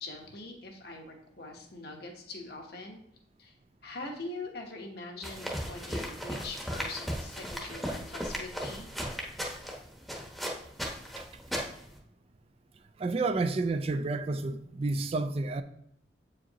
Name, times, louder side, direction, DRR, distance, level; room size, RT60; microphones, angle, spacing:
voice 1, 0.0-3.0 3.4-3.5 3.8-8.9, left 2 dB, 60° left, 1.1 m, -42 dB
sound 1, 5.2-12.0, equal, ahead, 0.9 m, -36 dB
voice 2, 13.0-15.6, right 3 dB, 30° right, 0.3 m, -30 dB
7.8 x 4.9 x 2.9 m
head